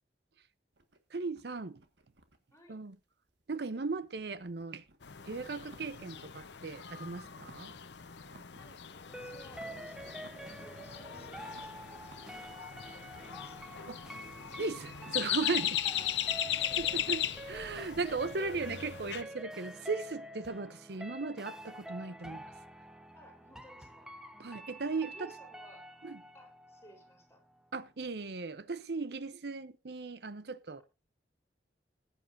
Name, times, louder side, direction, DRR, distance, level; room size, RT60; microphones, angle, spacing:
sound 1, 0.7-3.6 3.9-6.2 6.5-7.8 8.1-8.7 9.0-11.0 11.5-17.2, right 2 dB, 90° right, 1.6 m, -62 dB
voice 1, 1.1-1.8 2.7-3.0 3.5-4.9 5.2-7.7 8.4-8.5 13.9-14.0 14.6-15.8 16.8-22.5 24.4-25.3 26.0-26.2 27.7-30.8, right 4 dB, 65° right, 0.7 m, -37 dB
voice 2, 2.5-2.8 8.6-13.6 16.3-17.6 23.2-24.1 25.1-25.9 26.3-27.4, equal, 15° left, 3.9 m, -58 dB
sound 2, 5.0-19.2, left 11 dB, 80° left, 0.8 m, -38 dB
sound 3, 9.1-27.7 28.0-28.1, right 1 dB, 5° right, 0.8 m, -48 dB
20.0 x 9.1 x 2.6 m
head